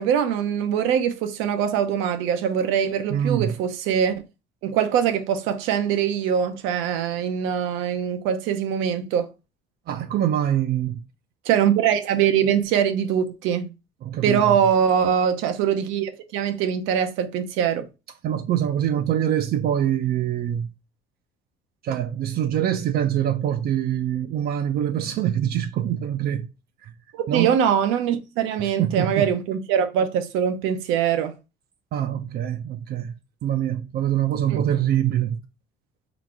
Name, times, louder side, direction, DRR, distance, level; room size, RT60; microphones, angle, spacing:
voice 1, 0.0-4.2 4.6-9.3 11.4-13.6 14.2-17.9 27.1-31.3 34.5-34.6, right 8 dB, 85° right, 0.8 m, -23 dB
voice 2, 3.1-3.6 9.9-11.0 14.0-14.6 18.2-20.7 21.8-26.5 26.8-26.9 27.3-27.5 28.6-29.3 31.9-33.1 33.4-35.4, right 10 dB, 50° right, 0.5 m, -24 dB
4.0 x 2.5 x 4.5 m
cardioid pair, 130°, 20 cm